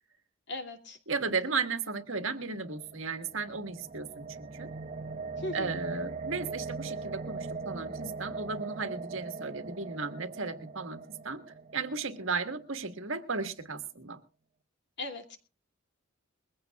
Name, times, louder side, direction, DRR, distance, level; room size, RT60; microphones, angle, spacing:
voice 1, 0.5-1.0 5.4-5.7 15.0-15.4, left 2 dB, 55° left, 6 dB, 2.7 m, -38 dB
voice 2, 1.1-4.7 5.5-11.4 11.7-14.2, right 4 dB, 70° right, 8 dB, 1.7 m, -35 dB
sound 1, 2.4-12.6, right 4 dB, 35° right, 1.1 m, -40 dB
22.0 x 16.0 x 2.4 m, 0.33 s
head